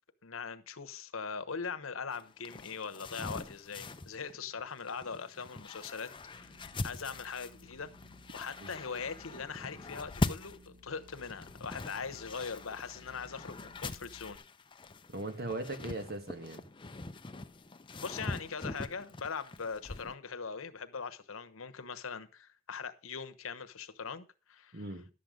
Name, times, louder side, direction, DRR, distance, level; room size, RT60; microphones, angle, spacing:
voice 1, 0.2-6.5 6.8-7.9 8.3-14.4 18.0-24.8, left 5 dB, 80° left, 1.0 m, -41 dB
sound 1, 2.1-20.1, left 2 dB, 25° left, 0.6 m, -42 dB
sound 2, 6.3-14.4, left 2 dB, 80° right, 2.0 m, -59 dB
voice 2, 15.1-16.7 24.7-25.1, right 2 dB, 50° right, 1.7 m, -39 dB
11.5 x 7.8 x 5.2 m
head